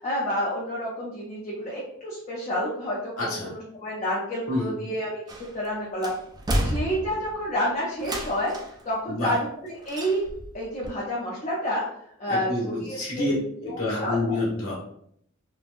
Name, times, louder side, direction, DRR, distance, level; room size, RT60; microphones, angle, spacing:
voice 1, 0.0-6.1 6.6-8.5 8.8-10.2 10.5-11.8 12.2-13.3 13.7-14.4, equal, 35° left, -6 dB, 0.6 m, -29 dB
voice 2, 3.2-3.5 4.5-4.7 9.1-9.4 12.3-13.3 13.6-14.7, left 2 dB, 80° left, -6 dB, 1.3 m, -28 dB
sound 1, 5.3-5.7 6.0-7.4 8.0-8.8 9.9-10.5 10.8-10.9, equal, 20° right, 0.3 m, -30 dB
3.2 x 2.1 x 2.5 m, 0.69 s
head